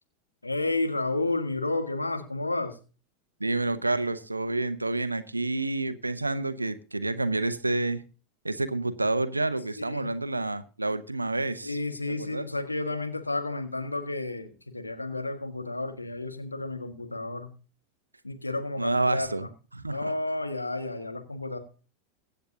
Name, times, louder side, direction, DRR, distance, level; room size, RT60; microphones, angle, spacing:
voice 1, 0.4-2.8 9.8-10.1 11.6-17.5 18.2-19.5 19.9-21.6, left 2 dB, 85° left, 6 dB, 1.6 m, -31 dB
voice 2, 3.4-8.0 8.4-11.8 12.2-12.5 18.8-19.5 19.7-20.1, right 2 dB, 85° right, 13 dB, 0.8 m, -29 dB
23.5 x 8.0 x 2.8 m, 0.35 s
figure-of-eight pair, 85°, 0 cm